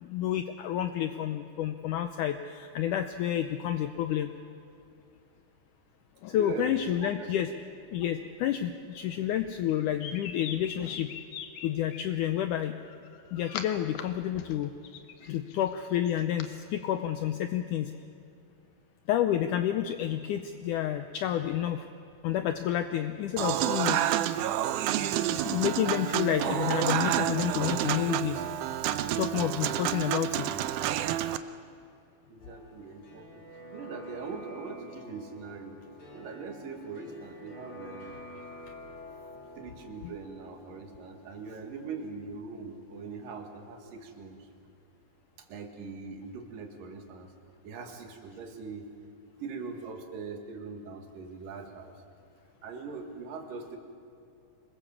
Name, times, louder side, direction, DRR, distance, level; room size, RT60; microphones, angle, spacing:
voice 1, 0.0-4.3 6.2-7.5 7.9-11.1 11.6-12.8 13.3-14.7 15.2-17.9 19.1-21.9 22.2-24.0 25.3-28.4 29.2-30.5, left 11 dB, 85° left, 8 dB, 1.8 m, -30 dB
voice 2, 6.3-7.3 32.3-35.8 36.1-38.1 39.6-44.5 45.4-47.3 47.6-48.9 49.4-52.0 52.6-53.8, right 4 dB, 65° right, 4 dB, 3.4 m, -41 dB
sound 1, 9.7-12.0 12.9-14.0 14.4-16.5, left 8 dB, 70° left, 2.6 m, -42 dB
Human voice / Acoustic guitar / Piano, 23.4-31.4, right 12 dB, 85° right, 1.7 m, -29 dB
sound 2, 32.4-44.1 44.4-44.5, left 1 dB, 35° left, 3.4 m, -49 dB
25.5 x 21.5 x 7.2 m, 2.6 s
omnidirectional pair, 4.4 m